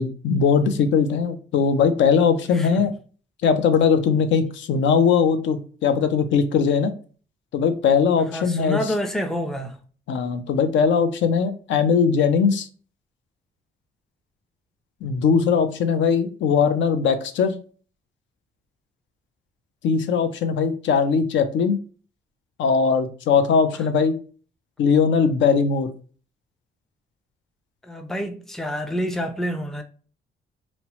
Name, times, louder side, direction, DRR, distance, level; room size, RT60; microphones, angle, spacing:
voice 1, 0.0-2.9 3.4-6.9 7.5-8.8 10.1-12.7 15.0-17.6 19.8-21.8 22.6-24.2 24.8-25.9, left 6 dB, 70° left, 0.4 m, -20 dB
voice 2, 2.5-2.8 8.3-9.8 27.8-29.8, equal, ahead, 0.4 m, -28 dB
2.8 x 2.0 x 2.8 m
cardioid pair, 90°, 20 cm